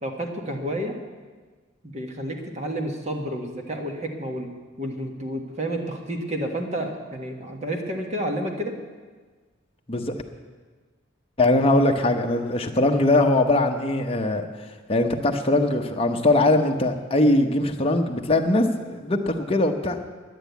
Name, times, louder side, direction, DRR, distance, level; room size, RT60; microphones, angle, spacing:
voice 1, 0.0-0.9 1.8-4.5 4.8-8.8, right 1 dB, 35° right, 3 dB, 1.6 m, -30 dB
voice 2, 11.4-14.4 14.9-20.0, left 2 dB, 30° left, 3 dB, 0.9 m, -21 dB
11.0 x 10.0 x 8.3 m, 1.4 s
head